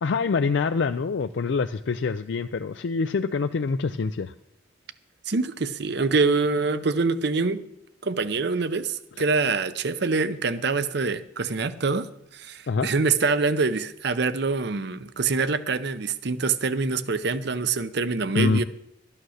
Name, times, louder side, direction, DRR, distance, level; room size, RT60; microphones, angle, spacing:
voice 1, 0.0-4.3 12.7-12.9 18.4-18.6, left 4 dB, 65° left, 10 dB, 0.4 m, -25 dB
voice 2, 5.3-7.6 8.0-18.6, right 4 dB, 55° right, 13 dB, 0.7 m, -25 dB
12.5 x 8.8 x 6.4 m, 0.79 s
head